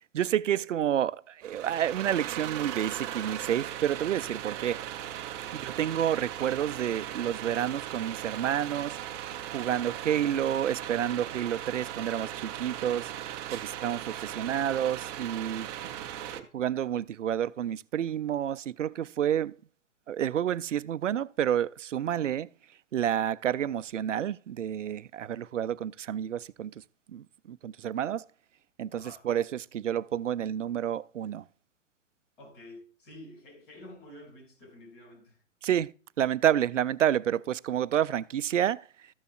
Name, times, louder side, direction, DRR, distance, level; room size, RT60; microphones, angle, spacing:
voice 1, 0.1-4.8 5.5-9.0 9.5-15.7 16.4-19.5 20.1-22.5 22.9-26.8 27.1-28.2 28.8-31.4 35.6-38.9, right 10 dB, 75° right, 0.5 m, -29 dB
sound 1, 1.4-16.4, right 11 dB, 20° right, 0.6 m, -38 dB
voice 2, 5.3-5.7 16.3-16.5 28.9-29.3 32.4-35.4, left 1 dB, 45° left, 6.2 m, -50 dB
13.5 x 10.0 x 2.4 m
figure-of-eight pair, 115°, 38 cm